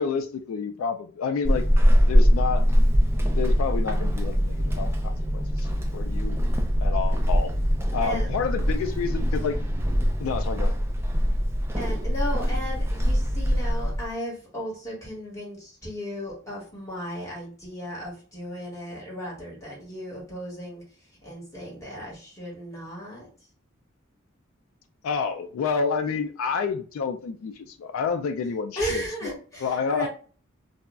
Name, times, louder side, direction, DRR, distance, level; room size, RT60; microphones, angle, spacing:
voice 1, 0.0-1.7 2.1-2.7 3.1-6.4 6.8-7.6 7.9-9.6 10.2-10.8 25.0-29.3 29.6-30.1, left 5 dB, 85° left, 0.3 m, -29 dB
Walk footsteps / Squeak, 1.4-14.1, equal, 10° right, 0.3 m, -23 dB
voice 2, 11.8-20.8 21.2-23.3 28.8-30.1, equal, 15° left, 1.2 m, -35 dB
2.3 x 2.0 x 3.4 m
head